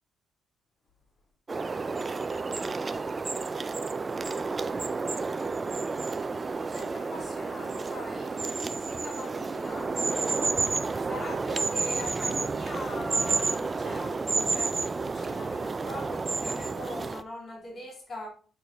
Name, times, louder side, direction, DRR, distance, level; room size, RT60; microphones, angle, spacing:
sound 1, 1.5-17.2, right 4 dB, 30° right, 0.5 m, -30 dB
voice 1, 6.7-8.5 8.7-10.0 11.0-18.3, left 1 dB, 35° left, 2.5 m, -41 dB
6.9 x 4.5 x 4.2 m
cardioid pair, 90°, 0 cm